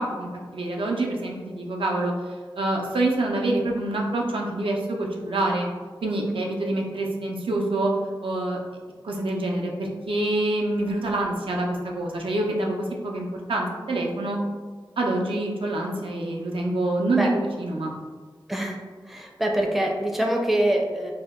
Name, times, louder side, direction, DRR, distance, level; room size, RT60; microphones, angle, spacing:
voice 1, 0.0-2.1 2.6-5.7 6.0-7.9 8.2-8.6 9.0-14.4 15.0-17.9, right 2 dB, 85° right, -1 dB, 0.5 m, -26 dB
voice 2, 19.1-21.1, right 1 dB, ahead, 0 dB, 0.4 m, -24 dB
2.7 x 2.0 x 3.5 m, 1.5 s
wide cardioid pair, 55°, 9 cm